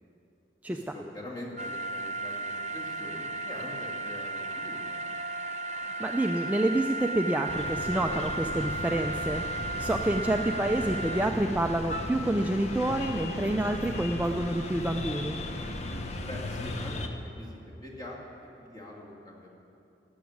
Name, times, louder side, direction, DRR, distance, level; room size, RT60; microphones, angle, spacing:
voice 1, 0.7-5.0 16.2-19.5, left 1 dB, 20° left, -3 dB, 2.1 m, -44 dB
sound 1, 1.6-11.3, right 2 dB, 40° right, 0.7 m, -35 dB
voice 2, 5.7-15.3, right 1 dB, 10° right, 3 dB, 0.3 m, -28 dB
sound 2, 7.5-17.1, left 2 dB, 40° left, 0.8 m, -36 dB
12.0 x 7.1 x 9.3 m, 2.8 s
head